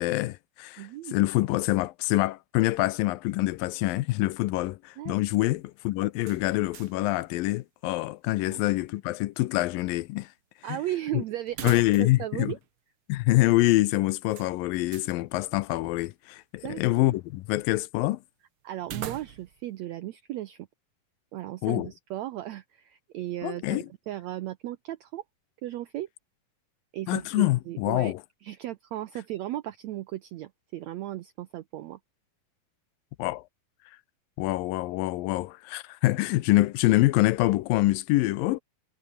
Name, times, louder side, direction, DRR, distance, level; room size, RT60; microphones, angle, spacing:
voice 1, 0.0-10.3 10.7-10.8 11.1-11.2 11.6-12.6 13.1-18.2 21.6-21.9 23.4-23.9 27.1-28.2 33.2-33.4 34.4-38.6, left 18 dB, 80° left, 2.4 m, -25 dB
voice 2, 0.8-1.2 5.0-5.1 5.4-5.5 8.5-8.6 10.6-12.6 16.6-17.2 18.6-20.7 21.3-25.2 25.6-26.1 26.9-28.1 28.4-32.0, right 14 dB, 80° right, 1.6 m, -36 dB
sound 1, 6.2-7.1 7.4-7.5 11.5-12.3 12.6-12.7 14.3-15.2 18.8-19.7, right 9 dB, 50° right, 1.7 m, -40 dB
omnidirectional pair, 4.1 m